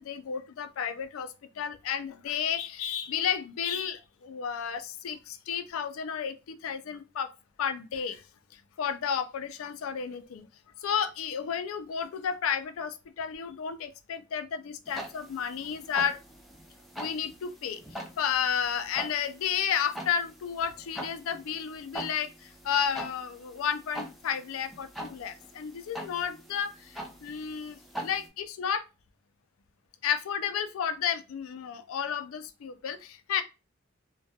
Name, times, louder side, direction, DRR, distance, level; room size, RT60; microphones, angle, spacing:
voice 1, 0.0-7.3 7.6-10.5 10.8-16.2 17.0-28.8 30.0-33.4, left 7 dB, 90° left, 0.4 m, -32 dB
sound 1, 14.9-28.3, right 1 dB, ahead, 0.4 m, -44 dB
2.2 x 2.2 x 2.6 m
head